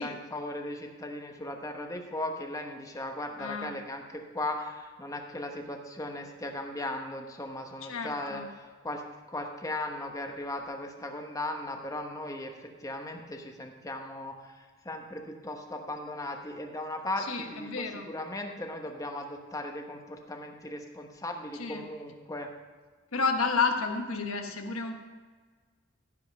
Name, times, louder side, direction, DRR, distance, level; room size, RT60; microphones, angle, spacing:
voice 1, 0.0-22.5, left 1 dB, 15° left, 3 dB, 1.0 m, -37 dB
voice 2, 3.4-3.8 7.9-8.5 17.2-18.1 21.6-21.8 23.1-25.0, left 4 dB, 75° left, 4 dB, 1.2 m, -31 dB
15.5 x 5.4 x 5.4 m, 1.5 s
head